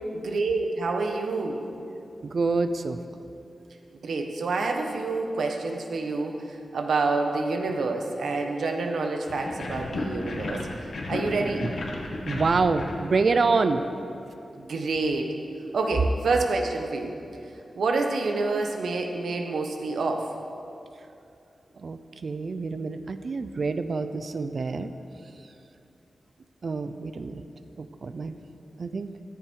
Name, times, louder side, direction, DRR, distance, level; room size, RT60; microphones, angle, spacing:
voice 1, 0.1-1.6 4.0-10.7 11.1-11.7 14.6-15.4 15.7-17.2 17.7-20.4, right 3 dB, 90° right, 3 dB, 1.4 m, -28 dB
voice 2, 2.2-3.0 12.3-13.8 21.8-24.9 26.6-27.4 27.8-28.4 28.8-29.1, right 4 dB, 55° right, 10 dB, 0.6 m, -26 dB
sound 1, 9.3-13.9, left 2 dB, 65° left, 1.9 m, -34 dB
14.5 x 14.0 x 4.8 m, 2.6 s
wide cardioid pair, 125°, 0 cm